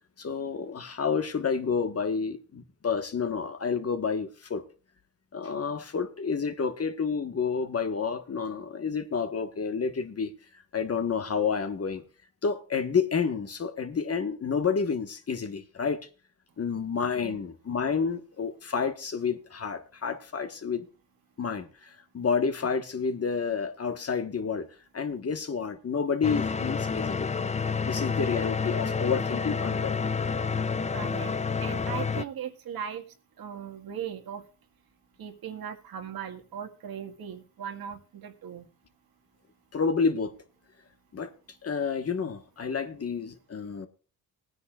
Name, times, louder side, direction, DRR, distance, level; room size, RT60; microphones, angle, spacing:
voice 1, 0.2-4.6 5.3-10.3 10.7-12.0 12.4-16.0 16.6-20.8 21.4-24.7 24.9-27.3 27.8-30.0 39.7-40.3 41.1-41.3 41.6-43.9, left 5 dB, 40° left, 1.5 m, -29 dB
sound 1, 26.2-32.2, left 5 dB, 20° left, 0.5 m, -29 dB
voice 2, 30.9-31.3 31.6-33.0 33.4-34.4 35.2-38.7, right 8 dB, 65° right, 1.9 m, -38 dB
19.5 x 9.7 x 2.5 m
cardioid pair, 85°, 38 cm